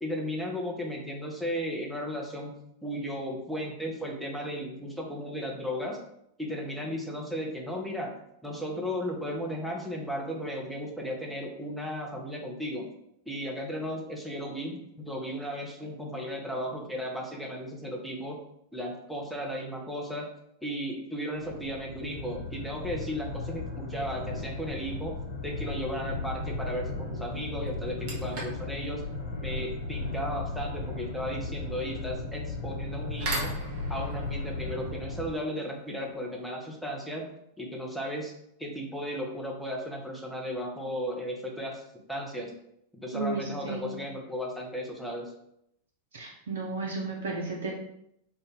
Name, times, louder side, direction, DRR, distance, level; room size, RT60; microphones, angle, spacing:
voice 1, 0.0-2.5 2.8-6.0 6.4-8.1 8.4-12.9 13.3-18.4 18.7-20.3 20.6-25.2 25.4-29.0 29.4-33.5 33.9-37.3 37.6-38.3 38.6-41.8 42.1-42.5 42.9-45.3, equal, ahead, -1 dB, 0.6 m, -35 dB
sound 1, 21.4-35.3, left 2 dB, 60° left, 0.8 m, -36 dB
sound 2, 24.7-25.0 27.0-27.1 27.7-36.4, right 2 dB, 45° right, 0.8 m, -42 dB
voice 2, 43.1-43.9 46.1-47.7, right 3 dB, 65° right, -2 dB, 0.5 m, -33 dB
2.5 x 2.2 x 3.9 m, 0.77 s
figure-of-eight pair, 90°, 0 cm